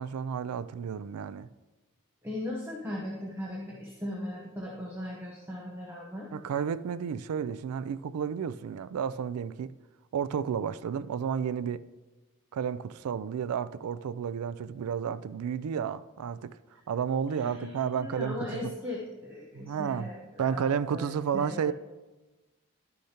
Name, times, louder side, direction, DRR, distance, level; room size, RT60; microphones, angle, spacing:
voice 1, 0.0-1.5 6.3-9.7 10.1-11.9 12.5-16.6 16.9-18.7 19.5-20.1 20.4-21.7, right 7 dB, 90° right, 0.3 m, -32 dB
voice 2, 2.2-6.3 17.3-21.7, left 1 dB, 10° right, 0.9 m, -38 dB
11.5 x 6.5 x 2.9 m
head